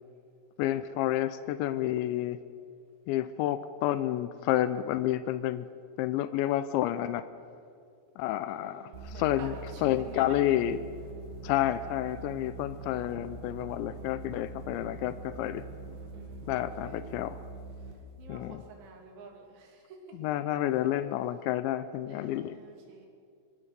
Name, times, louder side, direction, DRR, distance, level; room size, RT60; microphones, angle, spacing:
voice 1, 0.6-2.4 3.1-5.7 6.0-7.3 8.2-9.6 9.8-10.8 11.4-15.6 16.5-17.4 18.3-18.6 20.1-22.6, left 13 dB, 90° left, 12 dB, 2.6 m, -30 dB
voice 2, 8.5-10.4 12.2-12.8 16.1-17.0 17.8-20.2 22.1-23.1, right 5 dB, 85° right, 1 dB, 5.4 m, -50 dB
sound 1, 8.9-18.1, right 3 dB, 55° right, 4.1 m, -43 dB
23.0 x 21.0 x 6.7 m, 2.3 s
omnidirectional pair, 6.0 m